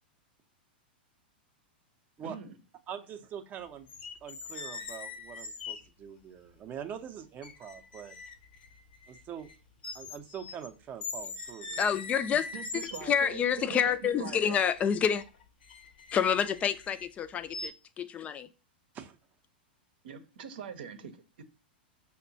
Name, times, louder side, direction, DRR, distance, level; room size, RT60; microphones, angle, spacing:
voice 1, 2.2-2.6 12.5-14.6 20.0-21.4, right 7 dB, 75° right, 0.7 m, -42 dB
voice 2, 2.9-3.9 4.2-8.2 9.1-9.5 9.9-11.9 18.9-19.2, right 8 dB, 30° right, 0.5 m, -43 dB
sound 1, 3.9-5.8 6.8-6.9 7.4-9.6 9.8-10.7 11.0-13.3 14.4-17.1 17.5-17.7, left 4 dB, 75° left, 0.7 m, -42 dB
voice 3, 11.8-12.4 13.0-15.2 16.1-18.5, left 8 dB, 25° left, 0.4 m, -28 dB
5.9 x 2.2 x 2.6 m
hypercardioid pair, 110°, 5 cm